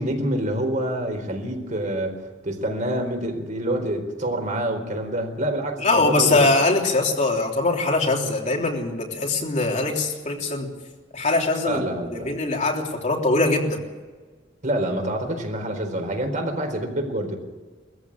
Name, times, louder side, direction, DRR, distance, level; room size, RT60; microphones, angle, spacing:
voice 1, 0.0-6.5 11.6-12.3 14.6-17.4, right 1 dB, 40° right, 4 dB, 4.1 m, -27 dB
voice 2, 5.8-10.7 11.1-11.8 12.1-13.8, left 2 dB, 40° left, 1 dB, 3.4 m, -22 dB
20.5 x 15.0 x 8.7 m, 1.4 s
head